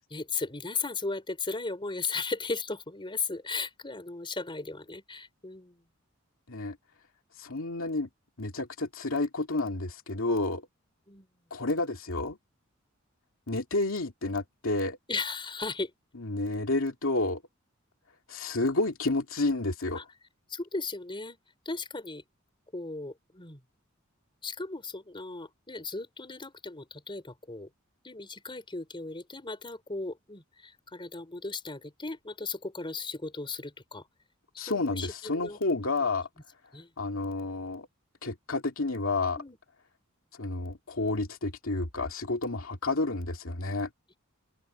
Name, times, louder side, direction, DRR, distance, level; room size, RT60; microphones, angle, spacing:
voice 1, 0.1-5.8 11.1-11.3 15.1-15.9 19.9-20.0 20.5-21.4 21.6-22.2 22.7-23.6 24.4-27.7 28.0-34.0 34.5-35.6 36.7-36.9 39.4-39.6, left 3 dB, 25° left, 4.3 m, -36 dB
voice 2, 7.4-8.1 8.4-10.6 11.5-12.4 13.5-15.0 16.2-17.4 18.3-20.0 34.6-36.3 37.0-37.9 38.2-39.4 40.4-43.9, left 2 dB, 75° left, 2.6 m, -30 dB
open air
head